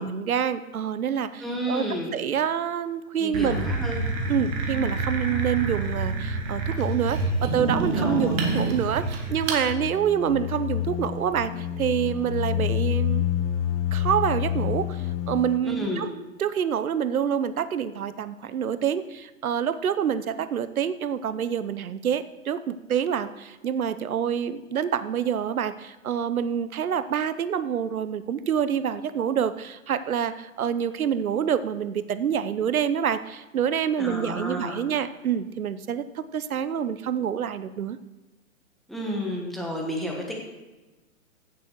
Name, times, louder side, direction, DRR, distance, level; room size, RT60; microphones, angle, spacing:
voice 1, 0.0-1.9 2.1-3.7 4.3-13.2 13.9-16.1 16.4-38.0, right 8 dB, 85° right, 14 dB, 0.9 m, -27 dB
voice 2, 1.4-2.2 3.2-3.9 7.9-8.4 15.6-16.1 34.0-34.8 38.9-40.3, equal, ahead, -2 dB, 1.1 m, -31 dB
sound 1, 3.3-9.6, right 2 dB, 20° right, 1.3 m, -27 dB
sound 2, 9.6-15.6, left 11 dB, 25° left, 0.7 m, -28 dB
16.0 x 7.0 x 4.6 m, 1.1 s
hypercardioid pair, 155°, 42 cm